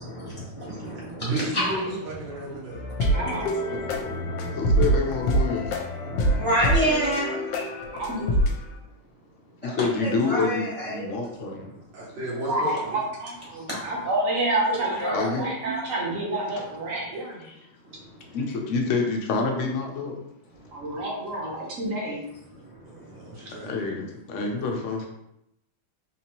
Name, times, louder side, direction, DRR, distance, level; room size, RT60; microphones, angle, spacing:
voice 1, 0.0-1.8 2.4-2.6 3.1-3.4 3.7-4.9 5.5-7.3 9.6-11.8 13.5-14.0 14.7-15.8 17.8-18.4 20.5-21.0 22.3-23.8 24.4-24.6, equal, 20° right, -7 dB, 0.9 m, -31 dB
voice 2, 0.9-2.8 7.9-8.5 11.9-12.7 22.8-23.7, right 2 dB, 75° right, -6 dB, 1.9 m, -33 dB
sound 1, 2.7-8.6, right 1 dB, 80° left, 1.2 m, -25 dB
voice 3, 3.1-3.4 3.7-4.0 7.9-8.4 12.5-12.7 13.2-17.5 20.7-22.2, right 1 dB, 50° right, -2 dB, 1.2 m, -29 dB
voice 4, 4.6-5.8 9.6-11.7 13.7-13.8 15.1-15.4 17.4-17.5 18.3-20.1 23.6-25.1, left 4 dB, 65° left, 2 dB, 0.8 m, -27 dB
4.2 x 2.8 x 2.9 m, 0.81 s
omnidirectional pair, 2.0 m